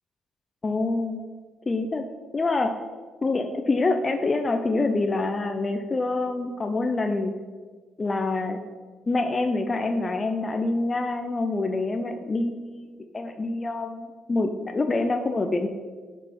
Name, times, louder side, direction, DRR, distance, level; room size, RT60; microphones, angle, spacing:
voice 1, 0.6-1.2 1.7-2.0 2.3-2.7 3.2-7.3 8.0-8.6 9.1-15.7, left 3 dB, 30° left, 6 dB, 0.4 m, -26 dB
6.1 x 5.3 x 4.2 m, 1.5 s
cardioid pair, 90°, 0 cm